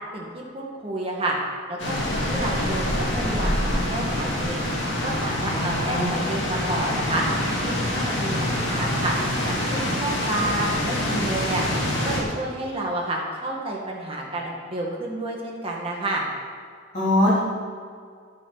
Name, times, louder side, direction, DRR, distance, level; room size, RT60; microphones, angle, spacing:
voice 1, 0.1-1.4 1.7-3.6 3.9-4.7 5.0-7.3 7.6-9.1 9.4-11.6 12.0-16.2, right 2 dB, 30° right, -2 dB, 1.9 m, -30 dB
sound 1, 1.8-12.2, left 1 dB, 60° left, 2.6 m, -26 dB
voice 2, 5.5-6.2 16.9-17.4, left 1 dB, 35° left, -9 dB, 3.3 m, -22 dB
17.0 x 6.7 x 4.2 m, 2.2 s
head